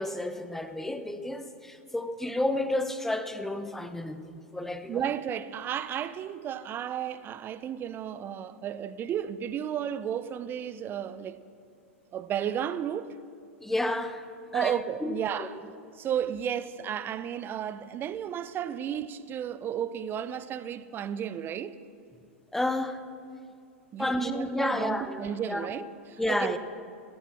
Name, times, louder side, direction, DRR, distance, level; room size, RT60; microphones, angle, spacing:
voice 1, 0.0-5.0 13.6-14.2 14.5-15.5 22.5-23.0 24.0-25.7 26.2-26.6, left 1 dB, 5° left, 0.9 m, -31 dB
voice 2, 4.9-11.4 12.1-13.2 14.5-15.6 15.9-21.8 23.9-26.6, right 9 dB, 30° right, 0.7 m, -33 dB
15.5 x 14.0 x 6.1 m
figure-of-eight pair, 95°, 8 cm